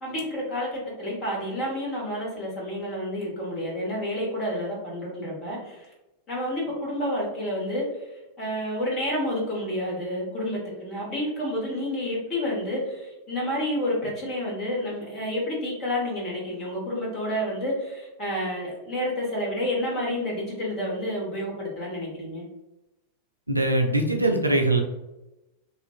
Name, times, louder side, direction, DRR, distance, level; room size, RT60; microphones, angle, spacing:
voice 1, 0.0-5.8 6.3-8.1 8.4-22.4, left 1 dB, 30° left, -3 dB, 1.2 m, -29 dB
voice 2, 23.5-24.8, right 2 dB, 85° right, 3 dB, 0.3 m, -22 dB
2.5 x 2.4 x 2.3 m, 0.98 s
figure-of-eight pair, 90°, 0 cm